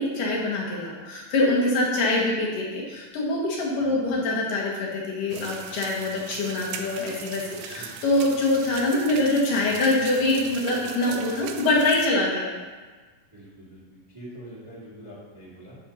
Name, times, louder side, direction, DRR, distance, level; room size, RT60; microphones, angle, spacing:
voice 1, 0.0-12.5, left 2 dB, 70° left, -3 dB, 3.1 m, -24 dB
voice 2, 3.8-4.1 7.7-7.9 13.3-15.8, right 1 dB, 10° right, -6 dB, 1.8 m, -44 dB
sound 1, 5.3-12.1, right 8 dB, 85° right, 2.4 m, -40 dB
10.5 x 4.5 x 5.6 m, 1.4 s
omnidirectional pair, 4.0 m